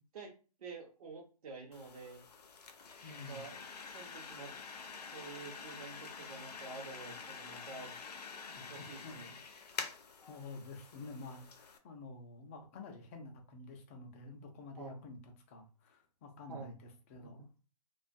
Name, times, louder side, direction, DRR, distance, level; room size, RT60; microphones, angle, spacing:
voice 1, 0.6-2.2 3.1-3.6 3.9-4.5 5.1-8.0 8.5-9.3 14.8-15.0 16.5-16.7, right 4 dB, 60° right, 0 dB, 0.7 m, -49 dB
sound 1, 1.7-11.8, left 5 dB, 75° left, 0.6 m, -47 dB
voice 2, 3.0-3.5 8.6-8.7 9.0-9.4 10.3-17.5, left 3 dB, 20° left, 3 dB, 0.4 m, -49 dB
2.4 x 2.2 x 2.5 m, 0.35 s
hypercardioid pair, 145°, 20 cm